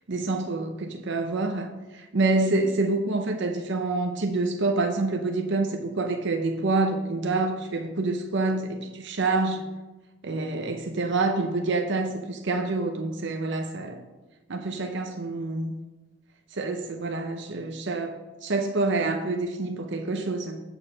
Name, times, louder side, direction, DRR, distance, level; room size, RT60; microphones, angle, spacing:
voice 1, 0.1-9.7 10.2-14.0 14.5-15.8 16.5-20.6, right 3 dB, 60° right, 4 dB, 0.7 m, -27 dB
8.7 x 4.8 x 6.3 m, 1.2 s
head